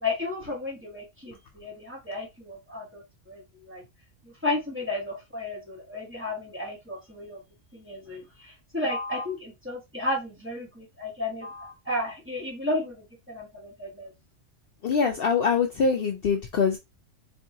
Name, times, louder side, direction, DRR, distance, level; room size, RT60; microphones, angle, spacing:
voice 1, 0.0-3.8 4.2-7.4 7.7-14.1, left 2 dB, 10° right, -3 dB, 1.2 m, -33 dB
voice 2, 14.8-16.8, left 5 dB, 60° left, 3 dB, 0.7 m, -24 dB
4.5 x 2.8 x 2.7 m, 0.21 s
omnidirectional pair, 1.3 m